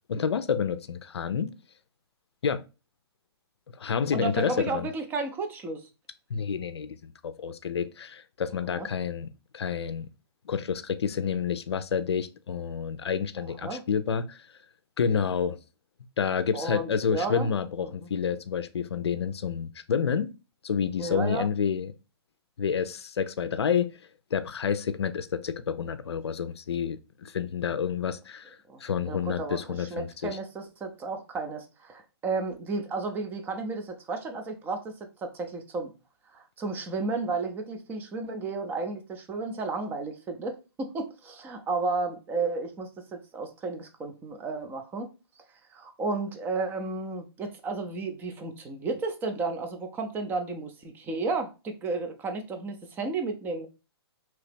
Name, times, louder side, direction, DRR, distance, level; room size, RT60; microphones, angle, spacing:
voice 1, 0.1-1.5 2.4-2.6 3.8-4.9 6.3-9.3 9.5-10.1 10.5-14.4 15.0-15.6 16.2-20.3 20.6-21.9 22.6-23.9 24.3-30.4, left 7 dB, 85° left, 0.4 m, -29 dB
voice 2, 4.1-5.8 8.7-8.9 13.6-13.8 16.5-17.5 17.8-18.1 21.0-21.4 28.7-28.8 29.0-35.9 36.3-45.1 45.7-53.7, right 3 dB, 15° right, 0.5 m, -33 dB
2.9 x 2.7 x 3.3 m
hypercardioid pair, 140°, 14 cm